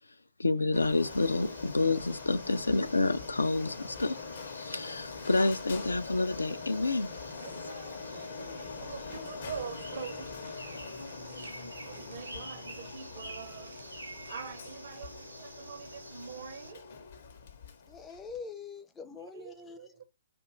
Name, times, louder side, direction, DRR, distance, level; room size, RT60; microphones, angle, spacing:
voice 1, 0.4-4.2 4.5-7.1, left 3 dB, 80° left, 0.3 m, -29 dB
Printer, 0.7-18.4, left 5 dB, 50° left, 0.6 m, -43 dB
sound 1, 1.0-16.7, right 1 dB, 90° right, 0.7 m, -49 dB
voice 2, 7.4-16.9 19.1-20.0, right 6 dB, 55° right, 0.5 m, -45 dB
voice 3, 17.9-19.9, left 5 dB, 10° left, 0.4 m, -44 dB
2.4 x 2.2 x 3.0 m
figure-of-eight pair, 125°, 0 cm